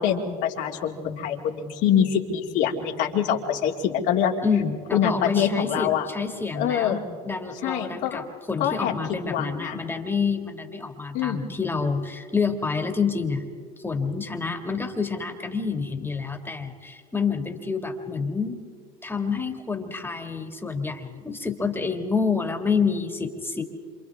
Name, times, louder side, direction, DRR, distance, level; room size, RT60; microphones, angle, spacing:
voice 1, 0.0-4.3 4.9-6.1 6.5-7.0 7.6-8.2 8.6-9.8 11.1-11.5, left 9 dB, 65° left, -1 dB, 2.5 m, -25 dB
voice 2, 4.4-13.4 13.8-18.6 19.0-23.6, left 5 dB, 10° left, 5 dB, 2.2 m, -28 dB
27.5 x 27.0 x 3.6 m, 2.1 s
hypercardioid pair, 90°, 20 cm